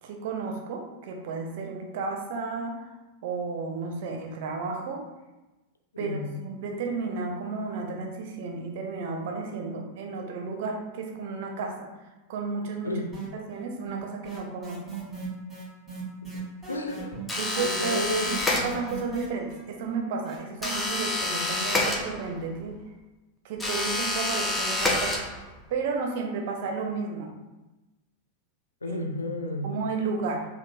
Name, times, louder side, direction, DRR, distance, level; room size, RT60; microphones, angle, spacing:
voice 1, 0.0-2.9 3.2-5.0 6.0-11.9 12.3-13.0 13.3-15.0 17.4-22.8 23.4-25.3 25.7-27.3 28.8-29.0 29.6-30.5, right 4 dB, 50° right, 2 dB, 0.5 m, -33 dB
voice 2, 6.0-6.3 12.8-13.1 16.7-17.2 17.6-18.7 28.8-29.7, left 1 dB, 80° left, 3 dB, 0.3 m, -32 dB
sound 1, 13.1-13.6 13.9-21.0, right 6 dB, 5° right, 1.3 m, -39 dB
sound 2, 17.3-19.1 20.6-22.5 23.6-25.6, left 2 dB, 10° left, 0.5 m, -28 dB
3.6 x 2.0 x 2.5 m, 1.1 s
figure-of-eight pair, 90°, 0 cm